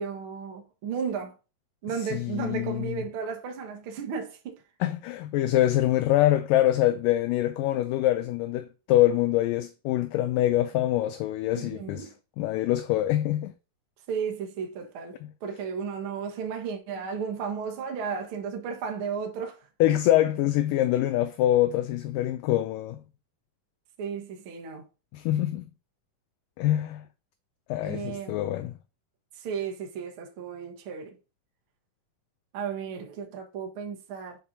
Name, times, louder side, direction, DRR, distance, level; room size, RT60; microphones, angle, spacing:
voice 1, 0.0-1.3 1.8-4.6 11.4-12.1 14.1-15.2 15.4-19.6 24.0-24.8 27.8-28.4 29.4-31.2 32.5-34.4, right 6 dB, 60° right, 1.5 m, -34 dB
voice 2, 2.1-3.0 4.8-12.1 12.4-13.5 19.8-23.0 25.1-25.7 26.6-27.0 27.7-28.7, left 14 dB, 80° left, 2.0 m, -24 dB
8.3 x 5.9 x 2.7 m
omnidirectional pair, 4.2 m